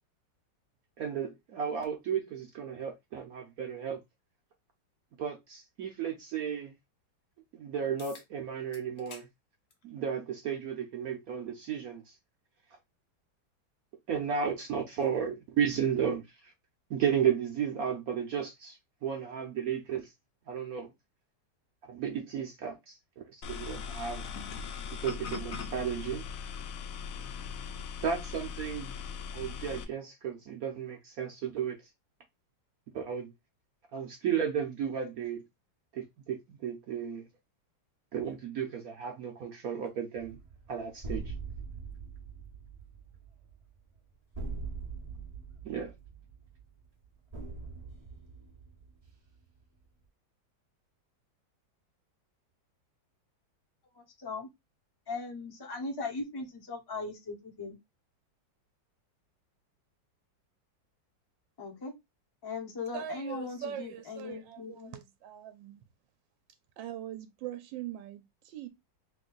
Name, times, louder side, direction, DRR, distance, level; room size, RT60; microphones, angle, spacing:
voice 1, 1.0-4.0 5.2-6.7 7.5-9.3 9.8-12.1 14.1-16.2 16.9-20.1 20.5-20.9 21.9-23.0 23.3-24.2 25.0-26.2 28.0-28.9 29.3-31.8 32.9-33.3 33.9-35.4 35.9-37.3 38.1-40.4 40.7-41.3 45.6-45.9, right 7 dB, 65° right, 0.9 m, -33 dB
sound 1, 8.0-8.3 8.7-9.3 9.7-9.8 10.9-11.0 15.9-16.0, left 5 dB, 55° left, 1.0 m, -50 dB
sound 2, 23.4-29.8, left 6 dB, 80° left, 0.7 m, -40 dB
sound 3, 40.2-49.6, right 4 dB, 45° right, 0.4 m, -43 dB
voice 2, 53.9-54.5 55.1-57.8 61.6-61.9 62.4-64.9, left 3 dB, 25° left, 0.5 m, -39 dB
voice 3, 62.9-65.8 66.8-68.7, right 10 dB, 80° right, 1.2 m, -42 dB
3.1 x 2.6 x 3.8 m
omnidirectional pair, 2.0 m